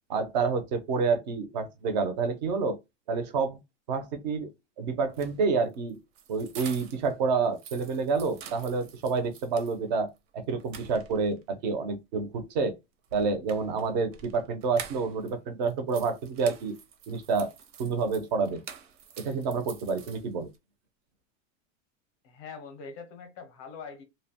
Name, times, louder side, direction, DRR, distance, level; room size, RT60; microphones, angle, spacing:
voice 1, 0.1-2.8 3.1-3.6 3.9-4.5 4.8-6.0 6.3-12.8 13.1-16.8 17.1-17.5 17.8-18.6 19.2-20.5, right 4 dB, 35° right, 0.4 m, -28 dB
sound 1, 5.0-7.1 7.4-9.8 10.2-10.3 10.6-11.4 13.0-15.3 15.6-20.6, right 7 dB, 80° right, 0.7 m, -47 dB
voice 2, 22.2-24.0, left 5 dB, 30° left, 0.5 m, -43 dB
2.6 x 2.1 x 2.6 m
supercardioid pair, 180°, 38 cm